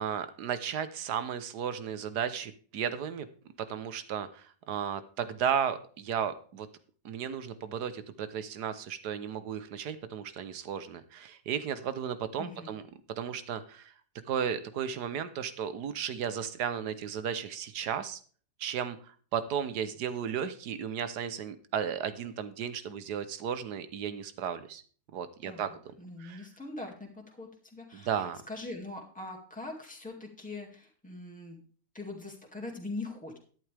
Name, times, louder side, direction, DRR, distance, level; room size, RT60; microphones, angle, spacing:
voice 1, 0.0-3.3 3.6-6.7 7.0-12.9 13.2-13.9 14.3-18.2 18.6-24.8 25.1-25.7 26.2-26.5 27.9-28.4, right 8 dB, 85° right, 12 dB, 1.5 m, -34 dB
voice 2, 12.4-12.7 25.4-31.6 31.9-33.4, left 2 dB, 5° left, 0 dB, 2.1 m, -42 dB
12.0 x 11.0 x 3.4 m, 0.43 s
omnidirectional pair, 1.7 m